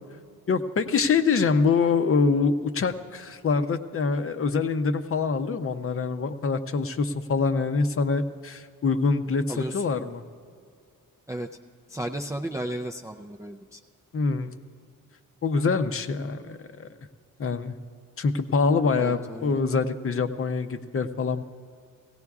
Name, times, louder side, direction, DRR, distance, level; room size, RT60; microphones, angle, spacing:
voice 1, 0.5-10.2 14.1-14.6 15.4-16.9 17.4-17.7 18.2-21.4, left 4 dB, 40° left, 9 dB, 0.6 m, -25 dB
voice 2, 9.5-9.8 11.3-11.5 11.9-13.8 19.0-19.6, right 1 dB, 10° right, 1 dB, 0.4 m, -34 dB
18.0 x 17.0 x 2.4 m, 2.2 s
cardioid pair, 115°, 34 cm